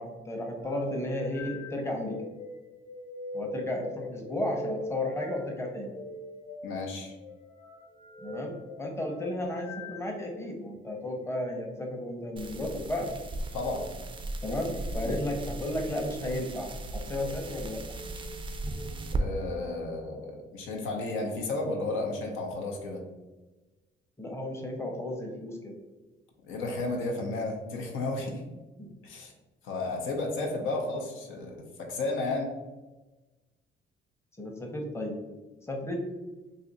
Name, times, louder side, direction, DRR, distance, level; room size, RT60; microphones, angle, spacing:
voice 1, 0.0-2.2 3.3-5.9 8.2-13.1 14.4-18.0 24.2-25.7 28.8-28.9 34.4-35.2 35.7-36.1, left 1 dB, 15° left, 1 dB, 0.7 m, -33 dB
sound 1, 0.6-10.6 11.3-11.6 13.6-13.9 14.7-15.2 15.8-16.1 16.9-17.4 17.8-18.9, left 1 dB, 70° left, 1.1 m, -42 dB
voice 2, 6.6-7.1 13.5-13.8 15.0-15.1 19.2-23.0 26.5-28.4 29.0-29.3 29.6-32.5, left 2 dB, 85° left, 0 dB, 0.7 m, -33 dB
sound 2, 12.4-19.2, right 2 dB, 25° right, 0.3 m, -37 dB
2.6 x 2.5 x 3.9 m, 1.1 s
cardioid pair, 90°, 20 cm